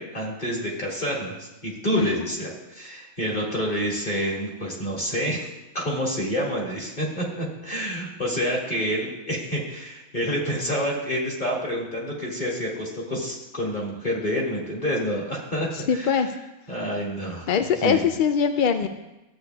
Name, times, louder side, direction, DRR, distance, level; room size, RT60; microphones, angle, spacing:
voice 1, 0.0-5.5 5.7-16.2 16.7-17.5 17.8-18.1, equal, 35° left, -3 dB, 2.3 m, -28 dB
voice 2, 15.7-16.3 17.5-18.9, left 7 dB, 65° left, 7 dB, 0.5 m, -22 dB
14.5 x 8.3 x 2.3 m, 0.99 s
omnidirectional pair, 1.3 m